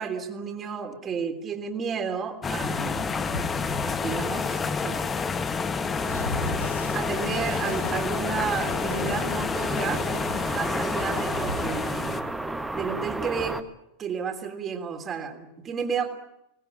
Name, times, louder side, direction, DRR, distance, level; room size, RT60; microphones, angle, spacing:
voice 1, 0.0-3.1 3.8-5.2 6.9-10.0 10.5-12.2 12.7-13.6 14.0-16.1, right 6 dB, 25° right, 6 dB, 3.2 m, -32 dB
sound 1, 2.4-12.2, left 5 dB, 20° left, 1.6 m, -29 dB
Train, 2.6-13.0, left 1 dB, 85° left, 4.6 m, -38 dB
sound 2, 6.0-13.6, right 2 dB, 5° right, 1.4 m, -34 dB
25.5 x 19.5 x 8.6 m, 0.90 s
figure-of-eight pair, 90°, 0 cm